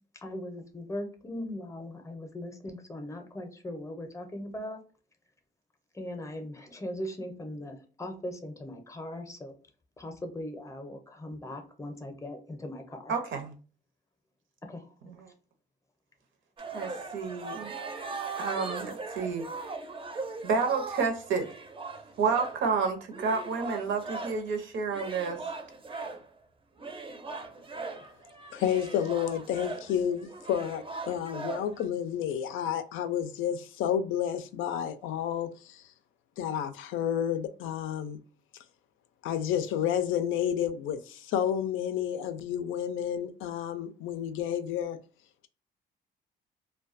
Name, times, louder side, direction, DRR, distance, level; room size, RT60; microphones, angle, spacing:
voice 1, 0.2-4.8 5.9-9.5 10.0-13.1 14.7-14.8, left 1 dB, 15° left, 0.6 m, -39 dB
voice 2, 13.1-13.5 15.0-15.3 16.7-17.8 18.4-19.4 20.4-21.5 22.2-25.4, right 5 dB, 75° right, 0.7 m, -30 dB
sound 1, 16.6-24.5 24.9-26.3 26.8-31.8, right 3 dB, 25° right, 0.5 m, -39 dB
voice 3, 28.5-35.8 36.4-38.2 39.2-45.0, left 9 dB, 85° left, 0.4 m, -30 dB
2.3 x 2.2 x 2.4 m
cardioid pair, 90°, 20 cm